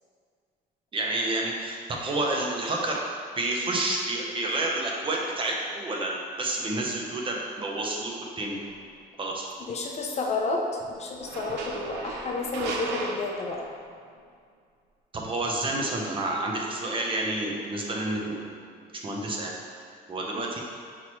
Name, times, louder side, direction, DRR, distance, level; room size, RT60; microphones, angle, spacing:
voice 1, 0.9-3.0 3.4-8.6 9.2-9.5 15.1-18.4 18.7-19.5 20.1-20.6, right 2 dB, 30° right, -1 dB, 0.7 m, -29 dB
sound 1, 8.6-8.8 11.1-14.0, right 3 dB, 85° right, 0.5 m, -36 dB
voice 2, 9.7-13.6 20.4-20.5, left 3 dB, 40° left, 0 dB, 0.5 m, -30 dB
5.7 x 3.0 x 3.1 m, 2.1 s
cardioid pair, 110°, 17 cm